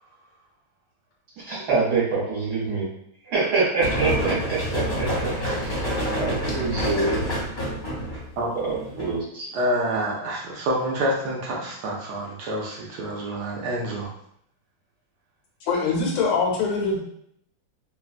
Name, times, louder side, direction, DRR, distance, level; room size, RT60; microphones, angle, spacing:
voice 1, 1.5-2.9 3.3-5.8 6.1-7.2 8.5-9.5, right 4 dB, 60° right, -8 dB, 1.3 m, -25 dB
sound 1, 3.8-9.2, equal, 45° left, 0.8 m, -27 dB
voice 2, 9.5-14.1, right 1 dB, 80° right, -3 dB, 0.9 m, -27 dB
voice 3, 15.6-17.0, left 4 dB, 85° left, -1 dB, 1.5 m, -23 dB
3.2 x 2.2 x 2.4 m, 0.71 s
omnidirectional pair, 2.3 m